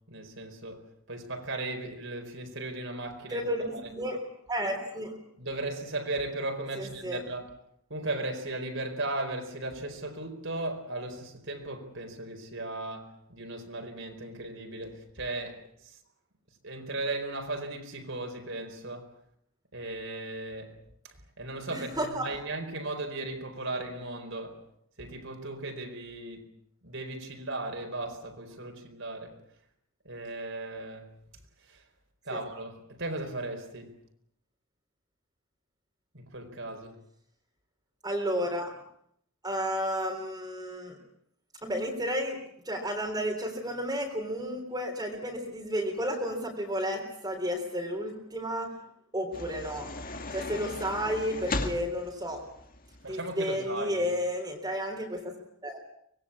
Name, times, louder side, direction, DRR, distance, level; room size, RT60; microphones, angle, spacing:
voice 1, 0.1-0.8 1.1-3.5 3.7-3.8 5.4-7.5 7.9-15.6 16.6-19.1 19.7-20.7 21.4-24.6 25.0-26.5 26.8-29.4 30.0-31.1 31.7-31.8 32.3-34.0 36.1-36.9 53.0-54.0, right 2 dB, 55° right, 4.6 m, -36 dB
voice 2, 3.3-5.2 6.8-7.2 21.7-22.3 32.3-32.4 38.0-38.8 39.4-41.0 41.6-48.8 49.1-49.9 50.3-52.4 53.1-55.3 55.6-55.8, equal, 15° right, 3.8 m, -32 dB
sound 1, 49.3-53.1, left 2 dB, 40° left, 2.1 m, -37 dB
25.0 x 21.0 x 8.5 m
head